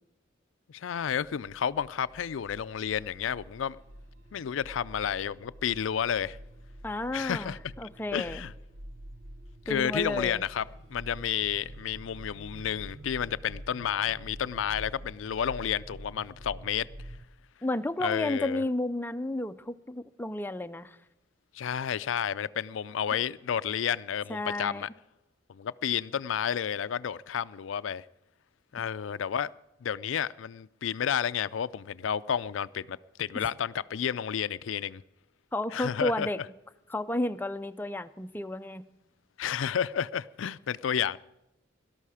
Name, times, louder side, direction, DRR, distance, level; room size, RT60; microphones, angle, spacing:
voice 1, 0.7-3.8 4.3-6.4 7.1-7.6 8.1-8.5 9.7-16.9 18.0-18.6 21.5-24.9 25.5-28.0 28.7-29.5 29.8-35.0 35.7-36.3 39.4-41.2, left 8 dB, 85° left, 0.4 m, -31 dB
sound 1, 1.2-17.3, right 1 dB, 85° right, 1.1 m, -47 dB
voice 2, 6.8-8.4 9.7-10.4 17.6-21.0 24.3-24.9 33.3-33.5 35.5-36.4 36.9-38.8, left 1 dB, 10° left, 0.5 m, -32 dB
18.0 x 12.5 x 4.9 m
head